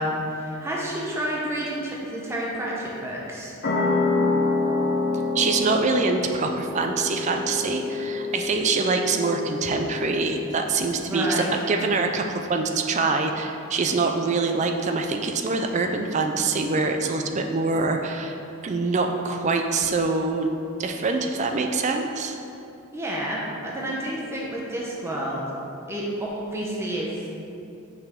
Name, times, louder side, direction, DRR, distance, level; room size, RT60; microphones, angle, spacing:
voice 1, 0.0-3.5 11.0-11.5 22.9-25.4 25.9-27.1, right 1 dB, 10° right, -4 dB, 0.8 m, -29 dB
sound 1, 3.6-10.8, left 3 dB, 50° left, 0.7 m, -27 dB
voice 2, 5.3-18.4 18.6-20.5 20.8-22.4, right 3 dB, 35° right, 4 dB, 0.4 m, -24 dB
5.8 x 5.6 x 3.6 m, 2.8 s
head